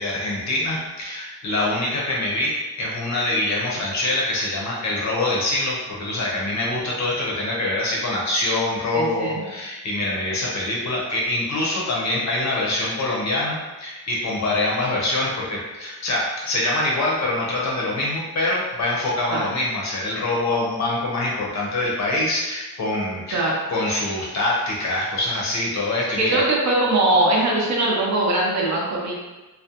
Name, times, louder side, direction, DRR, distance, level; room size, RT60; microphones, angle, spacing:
voice 1, 0.0-26.4, left 2 dB, 45° left, -4 dB, 0.6 m, -24 dB
voice 2, 8.9-9.4 19.3-19.5 23.3-23.5 26.2-29.1, right 2 dB, 45° right, -3 dB, 0.5 m, -21 dB
2.4 x 2.1 x 2.8 m, 1.1 s
cardioid pair, 160°, 41 cm